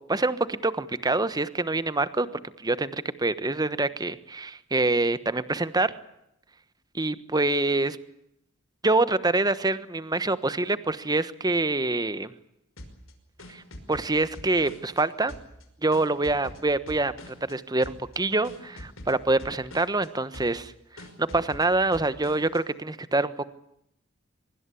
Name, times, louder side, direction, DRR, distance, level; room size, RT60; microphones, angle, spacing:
voice 1, 0.1-5.9 6.9-8.0 8.8-12.3 13.5-13.6 13.9-15.3 15.8-23.5, right 2 dB, 20° right, 14 dB, 1.2 m, -26 dB
sound 1, 12.8-15.0 15.3-17.5 17.8-18.2 18.4-20.1 20.3-20.7 21.0-22.6, left 1 dB, 70° left, 5.4 m, -45 dB
24.5 x 23.0 x 8.5 m, 0.77 s
head